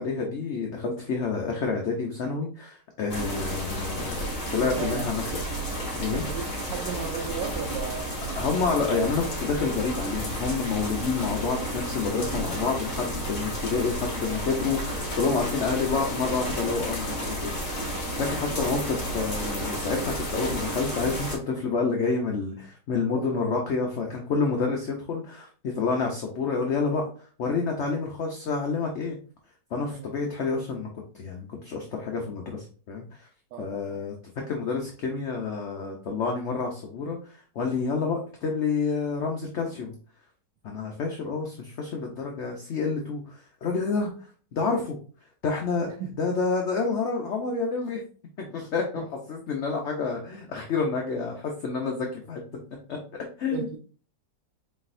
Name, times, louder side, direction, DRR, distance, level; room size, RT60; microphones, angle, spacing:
voice 1, 0.0-5.3 6.0-6.3 8.4-17.9 18.2-27.1 27.4-29.2 29.7-30.9 31.1-33.3 33.6-34.1 34.5-39.9 40.6-44.1 44.5-45.0 45.4-45.9 46.2-48.0 48.4-49.0 49.3-52.4 52.9-53.0 53.4-53.7, left 4 dB, 60° left, 1 dB, 0.7 m, -28 dB
sound 1, 3.1-21.4, equal, 45° left, 1.9 m, -32 dB
voice 2, 4.6-5.1 6.1-8.5 18.6-18.7 23.1-23.4 27.8-27.9 29.8-30.1 33.5-34.0 45.8-46.2 49.0-49.1 53.5-53.8, right 7 dB, 80° right, 2 dB, 1.2 m, -36 dB
4.5 x 4.0 x 2.5 m, 0.41 s
omnidirectional pair, 1.9 m